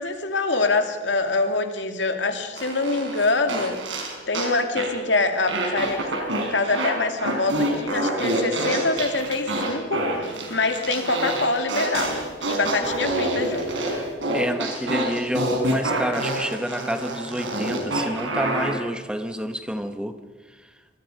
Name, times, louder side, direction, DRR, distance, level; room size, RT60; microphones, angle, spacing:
voice 1, 0.0-3.8 4.3-6.1 6.4-13.7, left 3 dB, 75° left, 6 dB, 2.3 m, -25 dB
sound 1, 2.6-4.5 4.8-5.0 5.5-6.9 7.2-18.8, right 1 dB, 90° right, 5.0 m, -27 dB
voice 2, 14.3-20.2 20.5-20.6, equal, 5° right, 8 dB, 0.9 m, -29 dB
26.0 x 20.5 x 5.2 m, 1.3 s
head